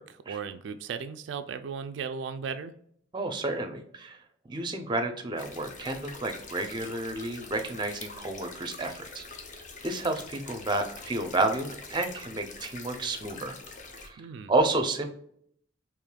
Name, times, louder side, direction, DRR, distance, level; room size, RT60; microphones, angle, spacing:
voice 1, 0.0-2.7 14.2-14.5, right 6 dB, 80° right, 9 dB, 0.3 m, -36 dB
voice 2, 3.1-4.2 4.5-9.3 9.8-13.6 14.0-14.2 14.5-15.1, right 2 dB, 25° right, 6 dB, 0.5 m, -30 dB
sound 1, 5.4-14.1, left 3 dB, 40° left, 0.6 m, -45 dB
4.9 x 3.0 x 2.2 m, 0.67 s
head